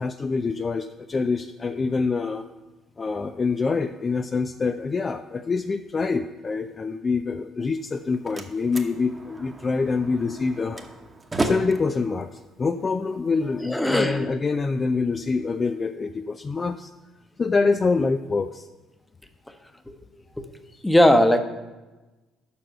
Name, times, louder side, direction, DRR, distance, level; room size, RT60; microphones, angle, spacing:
voice 1, 0.0-2.5 3.0-10.9 11.4-16.9 17.4-18.7 20.7-20.8, left 4 dB, 35° left, 8 dB, 0.4 m, -25 dB
Slam, 7.8-13.8, right 2 dB, 25° right, 1.1 m, -34 dB
voice 2, 13.7-14.6 19.9-20.0 20.4-20.5 20.8-21.4, left 1 dB, 10° left, 8 dB, 1.0 m, -19 dB
6.9 x 6.1 x 7.6 m, 1.2 s
hypercardioid pair, 50°, 0 cm